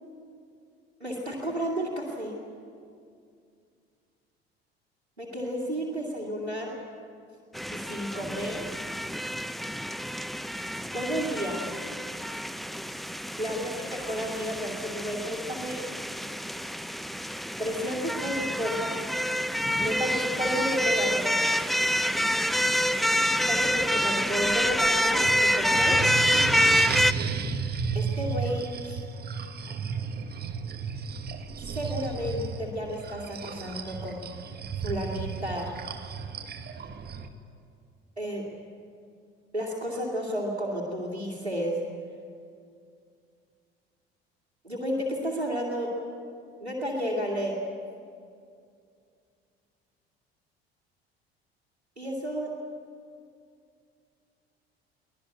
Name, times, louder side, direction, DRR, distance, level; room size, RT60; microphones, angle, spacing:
voice 1, 1.0-2.4 5.2-6.7 7.7-8.8 10.9-11.6 13.4-15.8 17.6-19.0 19.8-21.3 23.5-26.0 27.9-29.0 31.6-34.2 34.8-35.7 38.2-38.5 39.5-41.8 44.6-45.9 46.6-47.6 52.0-52.5, equal, 90° right, -6 dB, 2.5 m, -32 dB
sound 1, 7.5-27.1, equal, ahead, 0.6 m, -27 dB
sound 2, 23.6-37.3, right 5 dB, 30° right, 1.6 m, -34 dB
24.0 x 17.5 x 8.4 m, 2.3 s
figure-of-eight pair, 60°, 31 cm